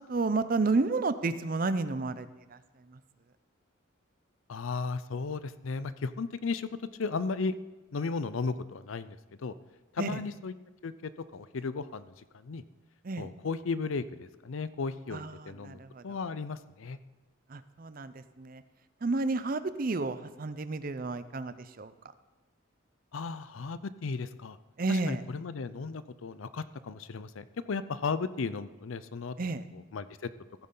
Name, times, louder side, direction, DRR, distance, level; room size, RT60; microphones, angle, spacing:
voice 1, 0.0-3.0 10.0-10.2 13.0-13.3 15.1-16.2 17.5-18.6 19.0-21.9 24.8-25.2 29.4-29.6, right 3 dB, 45° right, 13 dB, 0.5 m, -31 dB
voice 2, 4.5-6.7 7.0-7.5 7.9-9.5 9.9-10.5 10.8-12.6 13.2-17.0 23.1-24.6 24.9-29.4 29.7-30.3, left 4 dB, 75° left, 15 dB, 0.5 m, -35 dB
15.0 x 9.6 x 3.9 m, 1.1 s
head